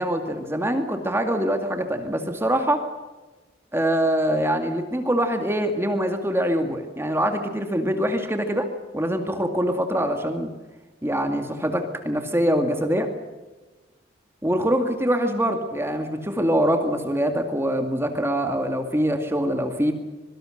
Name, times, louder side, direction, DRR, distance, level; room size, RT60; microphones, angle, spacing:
voice 1, 0.0-2.8 3.7-8.7 8.9-10.5 11.0-13.1 14.4-19.9, equal, 15° right, 5 dB, 2.2 m, -24 dB
24.5 x 24.0 x 6.6 m, 1.2 s
head